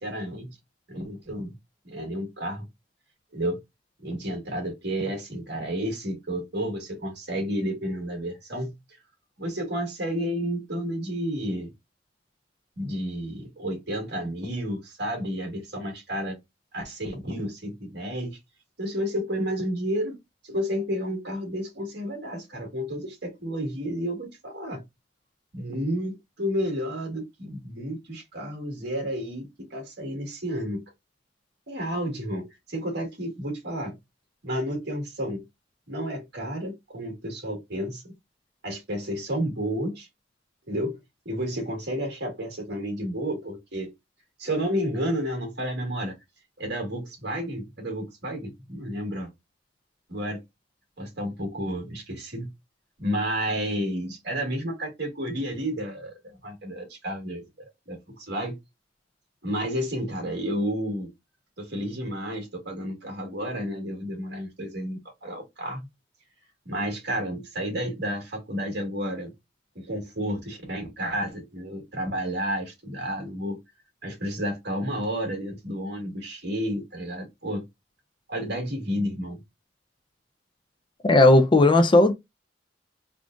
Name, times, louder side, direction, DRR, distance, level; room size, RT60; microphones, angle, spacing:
voice 1, 0.0-0.6 0.9-1.5 1.8-2.7 3.3-3.6 4.0-9.0 9.4-11.7 12.8-16.4 16.7-18.4 18.8-20.2 20.4-24.8 25.5-30.8 31.7-33.9 34.4-35.4 35.9-38.1 38.6-40.1 40.7-41.0 41.2-43.9 44.4-46.2 46.6-49.3 50.1-50.4 51.0-52.5 53.0-58.6 59.4-61.1 61.6-65.8 66.6-69.3 69.7-73.6 74.0-77.6 78.3-79.4, equal, 60° right, 1.9 m, -31 dB
voice 2, 81.1-82.1, left 2 dB, 25° left, 0.5 m, -16 dB
3.7 x 2.3 x 3.6 m
head